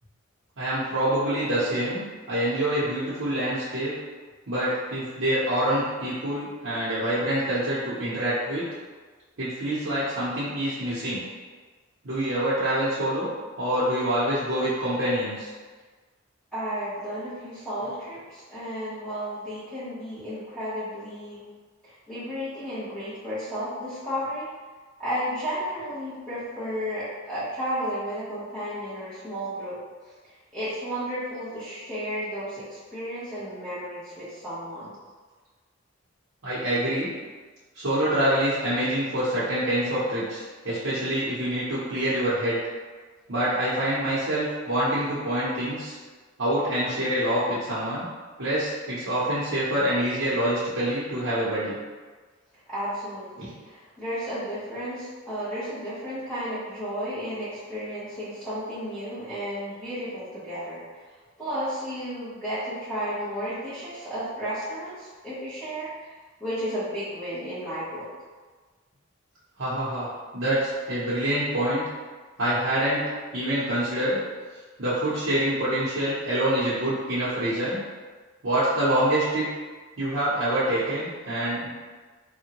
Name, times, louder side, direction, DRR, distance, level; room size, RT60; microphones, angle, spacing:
voice 1, 0.6-3.9 4.5-8.6 9.4-11.2 12.0-13.3 13.6-15.5 36.4-37.1 37.7-42.6 43.3-46.0 46.4-48.0 48.4-51.8 53.4-53.5 69.6-70.1 70.3-71.8 72.4-73.0 73.3-74.2 74.8-77.8 78.4-79.5 80.0-81.7, right 1 dB, 70° right, -11 dB, 0.8 m, -26 dB
voice 2, 16.5-21.4 21.8-24.5 25.0-29.7 30.2-34.9 52.7-60.8 61.4-66.1 66.4-68.0, equal, 5° left, -15 dB, 0.9 m, -33 dB
3.5 x 2.2 x 2.9 m, 1.4 s
head